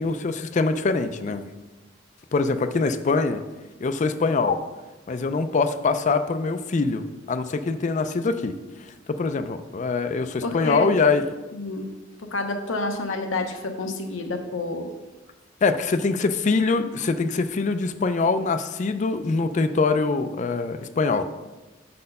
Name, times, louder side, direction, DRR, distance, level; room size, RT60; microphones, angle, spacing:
voice 1, 0.0-1.4 2.3-3.4 3.8-4.6 5.1-8.5 9.1-11.3 15.6-21.2, left 4 dB, 35° left, 10 dB, 0.4 m, -23 dB
voice 2, 10.4-10.9 11.5-11.9 12.3-14.9, left 2 dB, 80° left, 4 dB, 0.8 m, -29 dB
6.7 x 4.2 x 5.3 m, 1.1 s
head